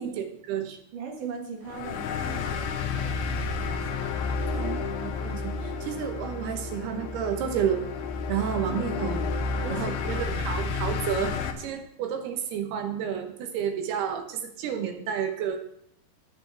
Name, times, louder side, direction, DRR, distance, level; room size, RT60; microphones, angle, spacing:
voice 1, 0.0-0.8 4.5-7.8 8.3-9.2 9.7-15.6, right 8 dB, 75° right, 5 dB, 3.1 m, -31 dB
voice 2, 0.9-4.4 8.5-8.9 9.6-10.3, right 5 dB, 55° right, 1 dB, 3.1 m, -40 dB
sound 1, 1.7-11.5, left 4 dB, 70° left, 2.4 m, -31 dB
18.0 x 6.7 x 3.5 m, 0.69 s
omnidirectional pair, 4.7 m